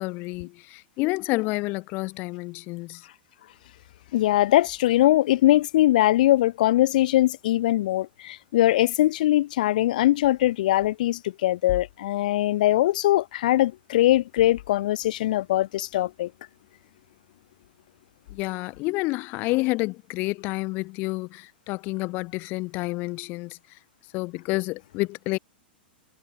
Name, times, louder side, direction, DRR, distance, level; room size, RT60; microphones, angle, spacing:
voice 1, 0.0-3.1 18.3-23.6 24.1-25.4, left 23 dB, 35° left, 1.3 m, -29 dB
voice 2, 4.1-16.3, left 15 dB, 55° left, 2.0 m, -21 dB
figure-of-eight pair, 95°, 5 cm